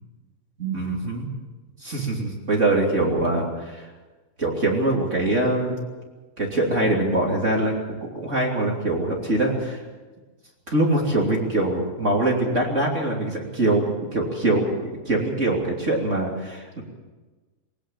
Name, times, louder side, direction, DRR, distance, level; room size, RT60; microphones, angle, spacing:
voice 1, 0.6-1.3 1.8-3.9 4.4-5.8 6.4-7.7 8.1-9.8 10.7-16.8, right 2 dB, 20° right, -1 dB, 2.3 m, -23 dB
20.5 x 19.0 x 7.3 m, 1.2 s
omnidirectional pair, 5.3 m